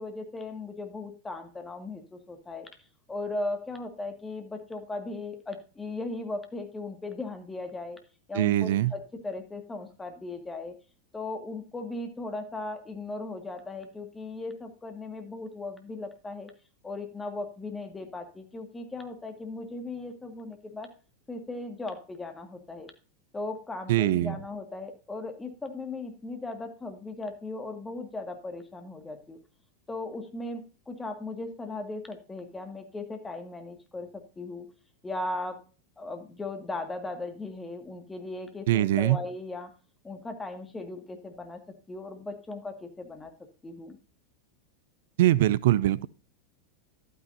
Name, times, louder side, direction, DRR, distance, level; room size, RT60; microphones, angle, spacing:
voice 1, 0.0-2.7 3.1-8.0 8.3-10.8 11.1-16.5 16.8-20.9 21.3-22.9 23.3-29.4 29.9-34.7 35.0-35.6 36.0-39.7 40.0-41.6 41.9-43.3 43.6-44.0, left 2 dB, 15° left, 1.9 m, -37 dB
voice 2, 8.4-8.9 23.9-24.4 38.7-39.2 45.2-46.1, right 14 dB, 60° right, 0.4 m, -22 dB
11.5 x 9.3 x 2.7 m
figure-of-eight pair, 90°, 0 cm